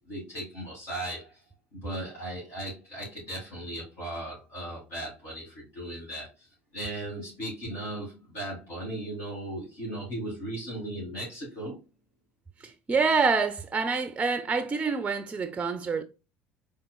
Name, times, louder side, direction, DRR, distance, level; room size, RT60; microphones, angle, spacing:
voice 1, 0.1-1.4 1.7-6.3 6.7-11.8, right 1 dB, 60° left, 2.2 m, -37 dB
voice 2, 12.6-16.0, right 4 dB, 20° right, 0.5 m, -27 dB
4.1 x 3.4 x 2.2 m
hypercardioid pair, 70°, 6 cm